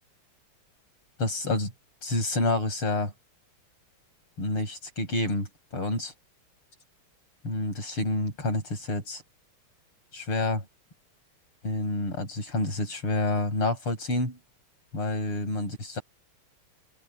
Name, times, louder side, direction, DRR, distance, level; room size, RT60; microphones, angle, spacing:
voice 1, 1.2-1.7 2.0-3.1 4.4-6.1 7.4-9.2 10.1-10.7 11.6-14.4 14.9-16.0, left 2 dB, 80° left, 8.8 m, -28 dB
open air
omnidirectional pair, 2.4 m